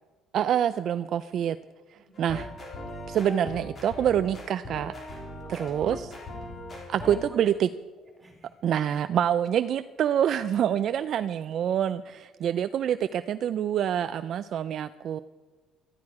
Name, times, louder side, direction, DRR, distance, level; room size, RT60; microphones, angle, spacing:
voice 1, 0.3-1.6 1.9-2.5 3.1-4.9 5.5-6.1 6.9-7.7 8.6-15.2, right 9 dB, 45° right, 12 dB, 0.4 m, -26 dB
voice 2, 1.9-2.3 5.4-6.2 7.0-7.6 8.0-8.6 10.6-10.7 12.3-12.5, equal, 10° right, -1 dB, 4.1 m, -49 dB
sound 1, 2.1-7.3, left 1 dB, 25° left, 3.8 m, -39 dB
18.0 x 14.0 x 4.9 m, 1.3 s
cardioid pair, 160°, 0 cm